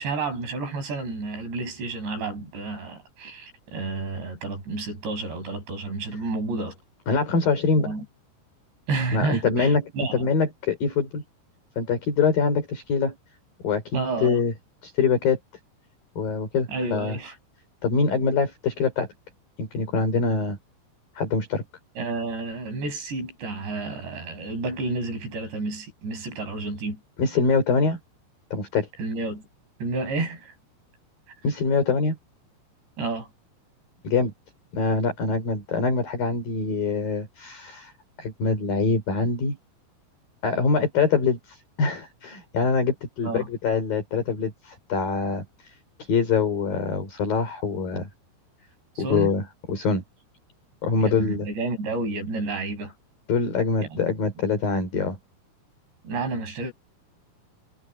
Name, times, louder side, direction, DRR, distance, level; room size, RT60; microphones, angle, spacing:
voice 1, 0.0-6.8 7.8-8.0 8.9-10.3 13.9-14.4 16.7-17.4 22.0-27.0 29.0-29.4 29.8-30.5 33.0-33.3 43.2-43.5 49.0-49.3 51.0-52.9 53.8-54.1 56.0-56.7, right 3 dB, 65° right, 8.9 m, -30 dB
voice 2, 7.1-7.9 9.1-11.2 11.8-13.2 13.6-14.5 14.8-15.4 16.2-17.2 17.8-19.1 19.6-20.6 21.1-21.6 27.2-28.0 28.5-28.9 31.4-32.2 34.0-34.3 34.7-37.9 38.2-39.6 40.4-48.1 49.0-50.0 50.8-51.5 53.3-55.2, left 4 dB, 50° left, 6.4 m, -24 dB
omnidirectional pair, 5.4 m